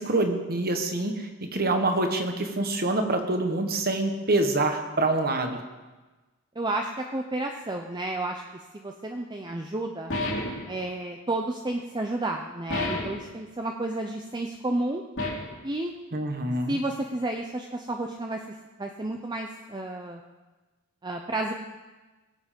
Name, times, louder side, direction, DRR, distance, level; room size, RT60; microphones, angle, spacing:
voice 1, 0.0-5.6 16.1-16.8, right 2 dB, 45° right, 5 dB, 1.4 m, -26 dB
voice 2, 6.6-8.4 8.7-10.1 10.7-15.0 15.6-15.9 16.7-18.4 18.8-20.2 21.0-21.5, right 2 dB, 20° right, 3 dB, 0.6 m, -31 dB
sound 1, 10.1-10.7 12.7-13.3 15.2-15.6, left 2 dB, 55° left, 2.9 m, -30 dB
21.0 x 8.0 x 5.2 m, 1.2 s
head